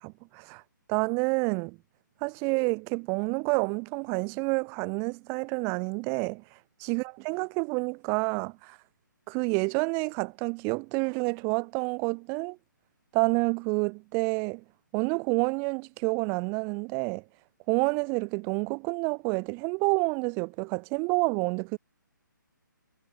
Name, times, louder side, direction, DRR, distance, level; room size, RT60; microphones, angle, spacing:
voice 1, 0.0-0.6 0.9-1.8 2.2-6.4 6.8-8.8 9.3-12.6 13.1-14.6 14.9-17.2 17.7-21.8, right 34 dB, 20° right, 2.2 m, -28 dB
figure-of-eight pair, 135°, 11 cm